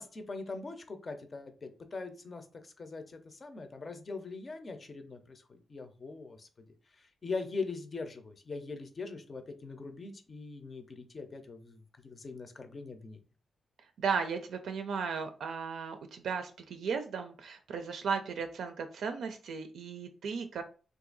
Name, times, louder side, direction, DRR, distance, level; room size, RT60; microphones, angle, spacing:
voice 1, 0.0-6.5 7.0-13.2, left 4 dB, 40° left, 7 dB, 0.6 m, -42 dB
voice 2, 14.0-20.6, right 5 dB, 80° right, 6 dB, 0.4 m, -35 dB
2.7 x 2.5 x 3.8 m, 0.36 s
cardioid pair, 95°, 0 cm